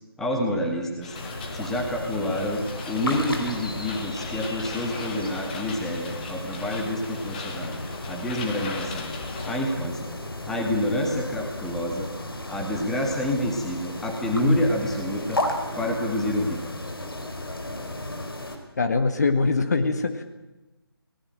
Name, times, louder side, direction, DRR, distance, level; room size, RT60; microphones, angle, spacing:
voice 1, 0.2-1.2 1.5-2.6 2.9-9.1 9.5-10.1 10.5-12.1 12.5-15.4 15.8-16.8, left 1 dB, 5° left, 1 dB, 2.0 m, -28 dB
sound 1, 1.0-9.6, left 4 dB, 20° left, 2.5 m, -39 dB
sound 2, 1.1-18.6, left 1 dB, 65° left, 4.6 m, -34 dB
voice 2, 18.8-20.2, left 3 dB, 40° left, 8 dB, 1.8 m, -22 dB
21.0 x 19.0 x 9.1 m, 1.0 s
figure-of-eight pair, 155°, 13 cm